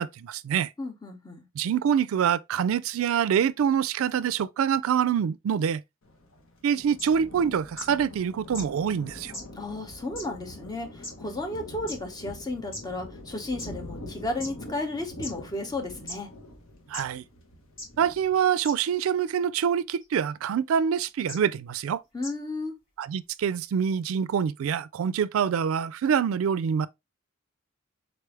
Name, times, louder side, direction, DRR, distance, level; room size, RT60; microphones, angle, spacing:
voice 1, 0.0-0.7 1.6-5.8 6.6-9.3 16.9-17.2 18.0-22.0 23.0-26.9, right 8 dB, 80° right, 0.3 m, -25 dB
voice 2, 0.8-1.4 9.5-16.3 22.1-22.8, left 2 dB, 20° left, 0.9 m, -33 dB
Thunder, 6.0-18.3, left 1 dB, 80° left, 1.1 m, -44 dB
sound 1, 7.0-7.1 7.8-7.9 8.5-8.7 9.3-9.4 10.2-10.3 11.0-11.1 11.9-12.0 12.7-12.8 13.6-13.7 14.4-14.5 15.2-15.3 16.1-16.2 16.9-17.0 17.8-17.9 18.6-18.7 20.0-20.2 21.3-21.4 22.2-22.3, left 1 dB, 65° left, 3.0 m, -37 dB
4.0 x 3.3 x 3.1 m
head